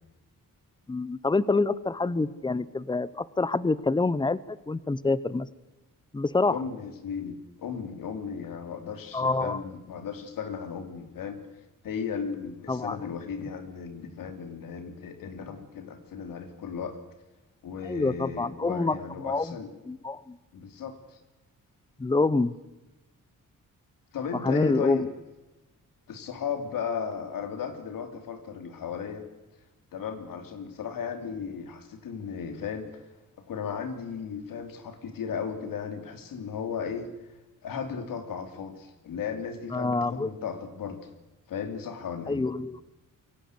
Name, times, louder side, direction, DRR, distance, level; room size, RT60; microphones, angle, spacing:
voice 1, 0.9-5.5 6.1-6.6 9.1-9.6 12.7-13.0 17.8-19.5 19.9-20.4 22.0-22.5 24.4-25.1 39.7-40.3 42.3-42.8, left 3 dB, 15° left, 18 dB, 0.8 m, -26 dB
voice 2, 6.5-11.4 11.8-17.0 17.6-19.7 20.5-21.2 24.1-25.1 26.1-29.3 29.9-33.1 33.4-41.0 41.5-42.5, left 6 dB, 90° left, 8 dB, 2.9 m, -36 dB
23.5 x 17.0 x 7.9 m, 1.1 s
wide cardioid pair, 120°, 32 cm